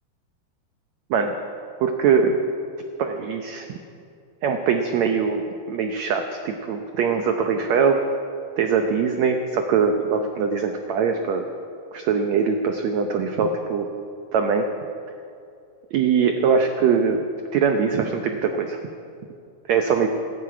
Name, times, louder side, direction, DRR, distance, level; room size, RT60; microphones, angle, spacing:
voice 1, 1.8-2.4 3.0-3.7 4.4-8.0 8.6-11.5 11.9-13.9 14.3-14.7 15.9-17.2 17.5-18.8 19.7-20.1, right 6 dB, 85° right, 5 dB, 1.5 m, -22 dB
16.0 x 9.9 x 8.6 m, 2.4 s
omnidirectional pair, 4.2 m